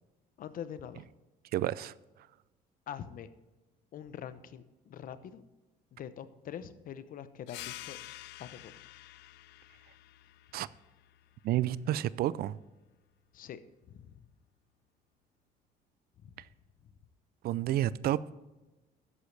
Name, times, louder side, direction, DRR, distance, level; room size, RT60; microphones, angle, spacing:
voice 1, 0.4-1.1 2.9-3.3 3.9-5.4 5.9-8.0 8.4-8.7 13.3-14.2 16.2-16.4 16.8-16.9, left 9 dB, 55° left, 0.8 m, -44 dB
voice 2, 1.5-1.9 10.5-10.7 11.4-12.6 17.4-18.3, right 13 dB, 65° right, 0.4 m, -30 dB
sound 1, 7.5-12.6, left 17 dB, 85° left, 0.4 m, -49 dB
13.0 x 9.5 x 3.3 m
cardioid pair, 110°, 17 cm